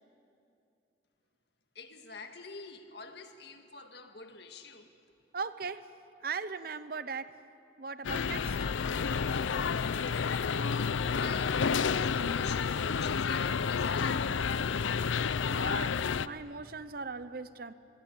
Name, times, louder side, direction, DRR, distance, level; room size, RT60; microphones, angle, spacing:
voice 1, 1.8-4.9 11.1-14.4, left 4 dB, 60° left, 6 dB, 1.8 m, -45 dB
voice 2, 5.3-5.9 6.2-7.4 7.8-8.7 15.4-17.7, right 5 dB, 50° right, 14 dB, 0.8 m, -39 dB
sound 1, 8.0-16.3, left 6 dB, 85° left, 0.5 m, -30 dB
25.0 x 22.0 x 8.7 m, 2.7 s
head